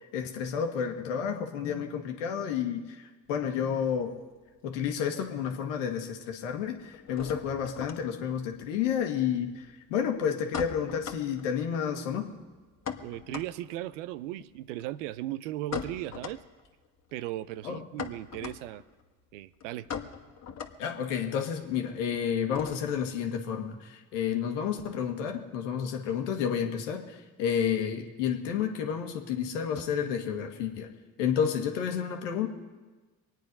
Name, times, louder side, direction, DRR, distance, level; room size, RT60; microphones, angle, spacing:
voice 1, 0.0-4.1 4.6-12.3 17.6-17.8 20.8-30.9 31.2-32.5, left 8 dB, 90° left, 4 dB, 1.6 m, -31 dB
sound 1, 3.3-4.9 5.1-5.9 6.1-23.1, left 7 dB, 45° left, 1.5 m, -42 dB
voice 2, 13.0-16.4 17.1-18.8 19.3-19.9, right 14 dB, 90° right, 17 dB, 0.6 m, -37 dB
24.0 x 9.2 x 5.3 m, 1.3 s
hypercardioid pair, 55°, 36 cm